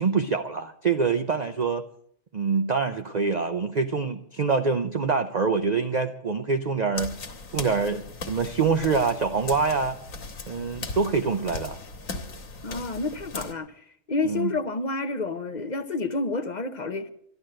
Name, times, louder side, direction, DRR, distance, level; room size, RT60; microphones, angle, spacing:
voice 1, 0.0-1.8 2.3-7.1 7.5-10.0 10.5-11.8 14.2-14.5, right 5 dB, 45° right, 0.6 m, -25 dB
sound 1, 6.9-13.5, left 3 dB, 90° left, 1.8 m, -38 dB
voice 2, 12.6-17.1, left 3 dB, 40° left, 0.8 m, -29 dB
13.5 x 11.5 x 7.6 m
omnidirectional pair, 1.4 m